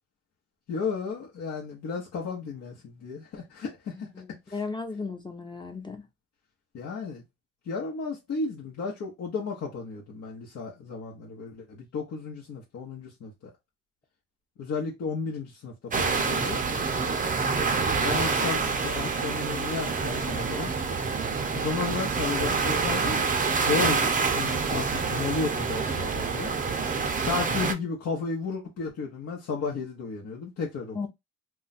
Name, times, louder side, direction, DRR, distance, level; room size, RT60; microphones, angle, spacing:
voice 1, 0.7-4.1 4.5-4.6 6.7-7.2 7.7-13.3 14.6-16.6 18.0-20.7 21.5-23.2 23.5-24.0 24.3-26.6 27.2-31.1, left 4 dB, 60° left, 0.9 m, -33 dB
voice 2, 4.0-6.0 30.9-31.1, left 4 dB, 15° left, 0.7 m, -35 dB
sound 1, 15.9-27.7, right 4 dB, 25° right, 0.5 m, -27 dB
2.4 x 2.2 x 3.9 m
cardioid pair, 90°, 30 cm